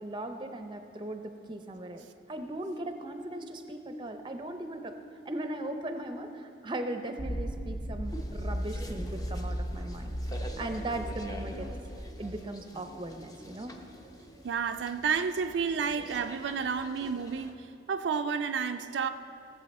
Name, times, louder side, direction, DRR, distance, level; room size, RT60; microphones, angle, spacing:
voice 1, 0.0-5.0 5.2-11.7 12.2-13.8, right 1 dB, 25° right, 7 dB, 0.6 m, -38 dB
sound 1, 7.2-12.4, equal, 60° left, 0.8 m, -36 dB
sound 2, 8.0-17.5, equal, 20° left, 0.7 m, -47 dB
voice 2, 14.4-19.1, right 6 dB, 75° right, 7 dB, 0.4 m, -31 dB
17.0 x 7.3 x 4.2 m, 2.6 s
head